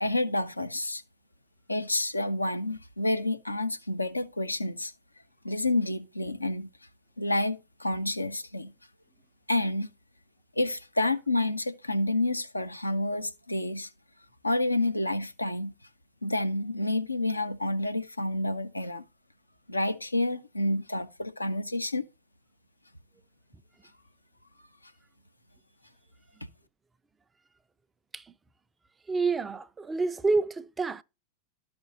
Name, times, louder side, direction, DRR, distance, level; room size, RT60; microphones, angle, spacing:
voice 1, 0.0-1.0 1.7-4.9 5.4-6.7 7.2-8.7 9.5-9.9 10.6-13.9 14.4-15.7 16.2-19.0 19.7-22.0, left 2 dB, 85° left, 0.6 m, -29 dB
voice 2, 29.1-31.0, right 3 dB, 15° right, 0.4 m, -28 dB
13.0 x 5.1 x 2.6 m
figure-of-eight pair, 90°, 0 cm